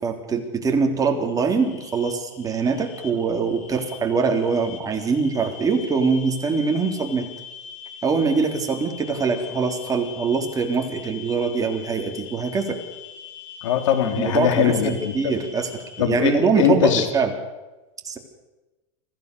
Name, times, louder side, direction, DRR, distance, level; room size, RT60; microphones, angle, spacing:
voice 1, 0.0-7.3 8.0-12.8 14.2-17.3 18.0-18.2, right 5 dB, 20° right, 3 dB, 3.5 m, -23 dB
sound 1, 1.5-16.0, left 8 dB, 50° left, 3.8 m, -42 dB
voice 2, 13.6-15.3 16.0-17.1, left 9 dB, 75° left, 7 dB, 3.4 m, -21 dB
25.0 x 15.5 x 6.9 m, 1.1 s
supercardioid pair, 125°, 16 cm